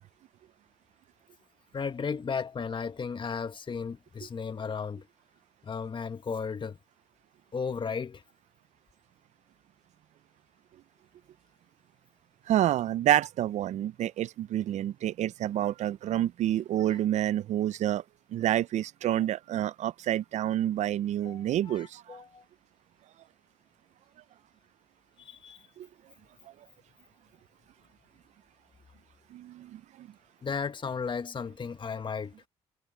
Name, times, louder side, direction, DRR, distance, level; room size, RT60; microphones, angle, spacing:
voice 1, 1.7-5.1 5.6-6.8 7.5-8.2 21.2-22.4 25.2-25.6 30.4-32.3, left 5 dB, 40° left, 1.8 m, -35 dB
voice 2, 12.5-18.0 18.3-22.2 25.8-25.9 29.3-30.1, right 12 dB, 65° right, 0.5 m, -28 dB
supercardioid pair, 60°, 13 cm